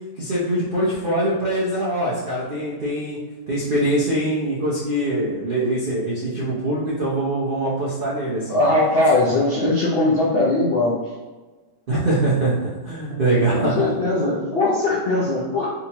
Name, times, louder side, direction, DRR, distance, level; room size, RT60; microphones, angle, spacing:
voice 1, 0.2-3.2 3.5-8.6 11.9-13.9, right 1 dB, 60° right, -8 dB, 0.5 m, -23 dB
voice 2, 8.5-11.0 13.5-15.7, left 2 dB, 65° left, -7 dB, 0.6 m, -20 dB
3.9 x 2.7 x 2.8 m, 1.3 s
omnidirectional pair, 1.9 m